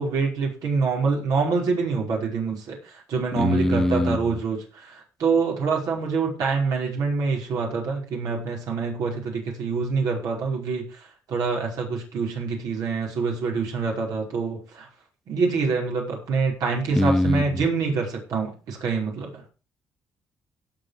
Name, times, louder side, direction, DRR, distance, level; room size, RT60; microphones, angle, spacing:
voice 1, 0.0-14.9 15.3-19.4, right 4 dB, 75° right, 5.6 m, -26 dB
voice 2, 3.4-4.2 17.0-17.4, left 1 dB, 5° left, 0.6 m, -21 dB
18.0 x 6.0 x 5.0 m
cardioid pair, 110°, 6 cm